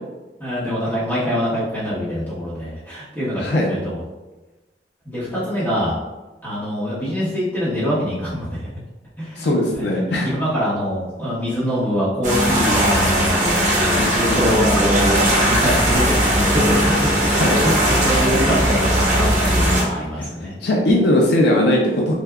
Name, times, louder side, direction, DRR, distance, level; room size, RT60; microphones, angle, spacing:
voice 1, 0.4-4.0 5.0-5.9 6.4-8.5 9.2-9.8 10.2-16.6 17.0-20.5, equal, 10° left, -11 dB, 1.2 m, -24 dB
voice 2, 3.4-3.7 9.3-10.3 14.0-14.4 17.3-17.7 20.1-22.1, left 1 dB, 65° left, -1 dB, 0.4 m, -19 dB
sound 1, 12.2-19.8, equal, 45° right, 0.9 m, -18 dB
3.4 x 2.6 x 2.3 m, 1.1 s
head